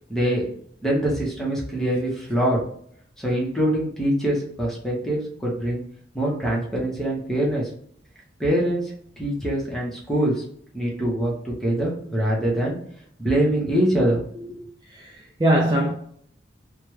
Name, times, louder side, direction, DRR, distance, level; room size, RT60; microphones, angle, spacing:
voice 1, 0.1-0.5 0.8-2.6 3.2-5.8 6.1-7.7 8.4-8.8 9.2-10.3 10.7-12.8 13.2-14.6, right 1 dB, ahead, 0.9 m, -24 dB
voice 2, 14.9-15.9, right 1 dB, 20° right, 0.4 m, -21 dB
3.3 x 2.2 x 3.1 m
head